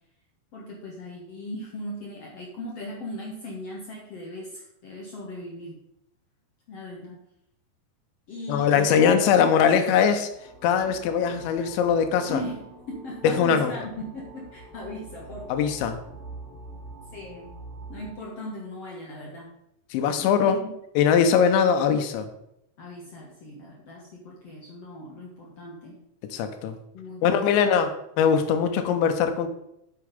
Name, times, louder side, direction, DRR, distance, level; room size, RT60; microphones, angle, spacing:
voice 1, 0.5-5.8 6.7-7.2 8.3-9.1 12.2-15.6 17.1-17.6 17.9-19.5 20.2-20.7 22.8-26.0 26.9-27.7, left 1 dB, 70° left, -2 dB, 1.5 m, -38 dB
voice 2, 8.5-10.3 10.6-12.4 13.2-13.7 15.5-16.0 19.9-20.6 21.0-22.3 26.2-26.8 27.2-29.5, left 7 dB, 90° left, 8 dB, 3.2 m, -21 dB
sound 1, 10.3-18.1, right 2 dB, 30° left, 3.4 m, -45 dB
8.2 x 6.9 x 5.2 m, 0.80 s
omnidirectional pair, 5.1 m